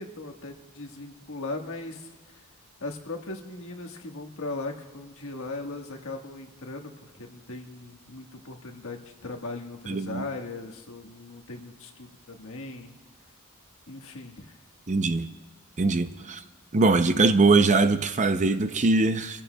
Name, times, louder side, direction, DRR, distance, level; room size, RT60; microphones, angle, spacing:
voice 1, 0.0-2.4 2.8-12.9 13.9-14.6, left 2 dB, 65° left, 1.4 m, -38 dB
voice 2, 9.9-10.2 14.9-15.3 15.8-16.4 16.7-19.4, right 3 dB, 35° right, 0.5 m, -22 dB
26.0 x 15.0 x 2.3 m
head